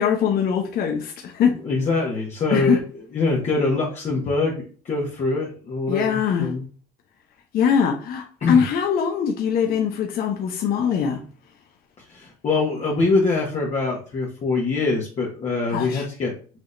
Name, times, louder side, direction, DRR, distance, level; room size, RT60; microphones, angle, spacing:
voice 1, 0.0-1.5 2.5-2.8 5.9-6.5 7.5-11.2 15.7-16.1, left 7 dB, 65° left, 0.8 m, -22 dB
voice 2, 1.6-2.8 3.1-6.6 8.4-8.6 12.0-16.3, left 3 dB, 40° left, 1.3 m, -24 dB
6.2 x 2.9 x 2.6 m
cardioid pair, 110°, 17 cm